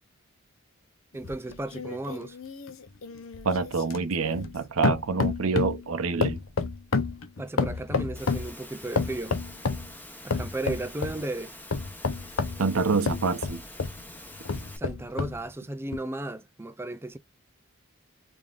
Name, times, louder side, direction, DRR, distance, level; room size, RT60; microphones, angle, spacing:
voice 1, 1.1-2.4 7.4-9.4 10.2-11.5 14.8-17.2, right 2 dB, 10° right, 0.3 m, -35 dB
sound 1, 1.2-4.6 4.8-5.8 6.2-8.5 9.0-9.9 10.3-11.2 11.7-14.0 14.5-15.4 15.9-16.0, left 4 dB, 70° left, 0.7 m, -29 dB
voice 2, 3.4-6.4 12.6-13.6, right 4 dB, 80° right, 0.7 m, -26 dB
Engine / Mechanisms, 8.1-14.8, left 1 dB, 10° left, 0.9 m, -46 dB
3.6 x 3.5 x 2.4 m
head